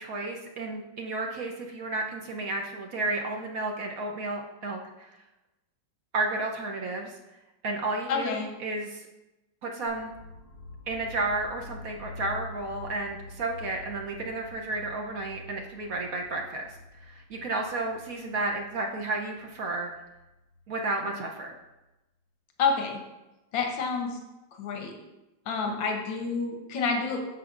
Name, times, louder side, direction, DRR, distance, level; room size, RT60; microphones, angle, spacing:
voice 1, 0.0-5.1 6.1-7.2 7.6-9.1 9.6-10.1 10.9-16.8 17.0-19.9 20.7-21.5, right 2 dB, 60° right, 1 dB, 1.0 m, -32 dB
voice 2, 8.1-8.5 22.6-23.0 23.5-24.2 24.6-25.0 25.5-27.2, left 5 dB, 90° left, 3 dB, 1.6 m, -28 dB
sound 1, 9.9-21.8, left 2 dB, 80° right, 3.5 m, -47 dB
10.5 x 6.8 x 2.5 m, 1.0 s
omnidirectional pair, 2.0 m